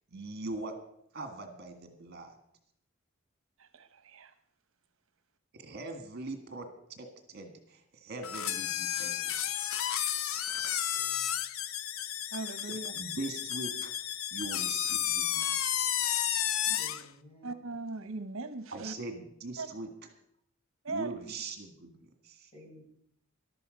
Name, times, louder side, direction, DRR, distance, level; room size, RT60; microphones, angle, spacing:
voice 1, 0.1-0.8 1.1-2.4 5.5-9.4 12.6-13.9 14.3-15.8 18.7-19.9 20.9-22.5, right 2 dB, 50° right, 5 dB, 1.8 m, -42 dB
voice 2, 3.6-4.3 12.3-12.9 16.7-16.8 17.4-18.9 19.6-19.7 20.8-21.1, right 3 dB, 70° right, 11 dB, 0.9 m, -39 dB
sound 1, 8.2-17.1, left 10 dB, 80° left, 0.6 m, -32 dB
voice 3, 10.7-11.3 16.8-17.6 22.5-22.8, left 1 dB, 30° left, -2 dB, 6.0 m, -54 dB
14.0 x 12.0 x 5.2 m, 0.70 s
head